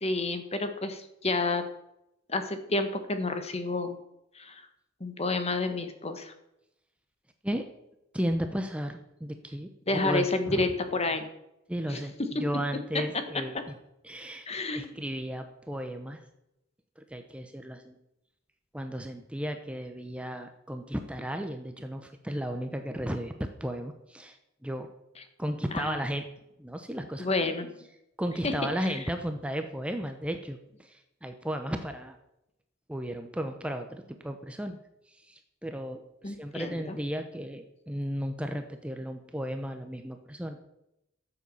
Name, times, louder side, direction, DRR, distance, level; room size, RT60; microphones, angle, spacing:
voice 1, 0.0-1.6 2.3-4.0 4.3-4.6 5.0-6.3 9.9-11.3 11.9-12.4 14.5-14.9 25.7-26.0 27.2-27.7 28.4-28.5 36.2-36.9, left 2 dB, 35° left, 8 dB, 1.5 m, -30 dB
voice 2, 8.1-10.7 11.7-12.1 12.4-13.6 14.0-14.5 14.7-16.2 17.0-18.0 18.7-24.4 24.6-24.9 25.4-26.2 26.6-27.3 28.2-32.2 32.9-34.8 35.1-40.6, equal, 5° right, 6 dB, 0.8 m, -34 dB
13.5 x 7.7 x 7.1 m, 0.85 s
head